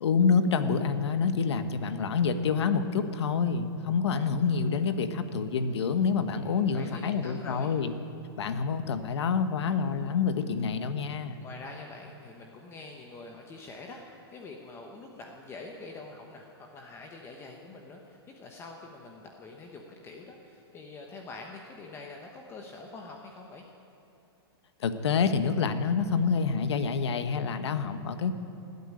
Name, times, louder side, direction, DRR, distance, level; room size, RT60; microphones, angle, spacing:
voice 1, 0.0-7.9 8.4-11.4 24.8-28.3, left 5 dB, 80° left, 10 dB, 1.2 m, -27 dB
voice 2, 6.4-7.7 11.4-23.7, left 3 dB, 20° left, 1 dB, 1.1 m, -45 dB
17.5 x 8.4 x 9.7 m, 2.9 s
hypercardioid pair, 155°, 14 cm